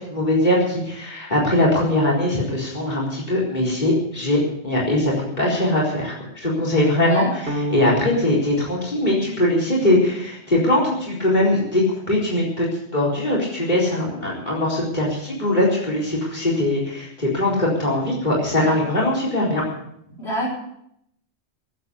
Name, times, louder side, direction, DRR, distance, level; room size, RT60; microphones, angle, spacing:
voice 1, 0.1-7.4 7.7-12.7 12.9-19.6, left 1 dB, 40° left, -4 dB, 4.4 m, -21 dB
voice 2, 7.0-7.3 18.5-18.8 20.2-20.5, equal, 70° left, -4 dB, 4.8 m, -27 dB
sound 1, 7.5-9.8, right 1 dB, 55° right, 1.6 m, -31 dB
18.0 x 8.3 x 8.2 m, 0.75 s
omnidirectional pair, 1.1 m